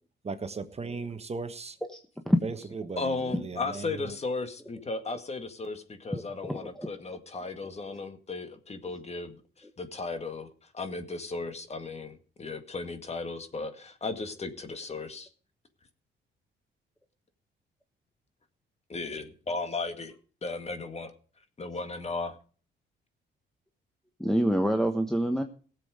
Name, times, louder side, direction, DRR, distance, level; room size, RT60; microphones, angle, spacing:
voice 1, 0.2-1.8 2.4-4.1, right 4 dB, 30° right, 9 dB, 1.3 m, -37 dB
voice 2, 3.0-10.5 10.7-15.3 18.9-20.1 20.4-21.1 21.6-22.4, left 3 dB, 30° left, 8 dB, 2.0 m, -35 dB
voice 3, 6.1-6.9 24.2-25.4, equal, ahead, 4 dB, 1.2 m, -26 dB
18.0 x 7.7 x 5.0 m, 0.41 s
cardioid pair, 90°, 20 cm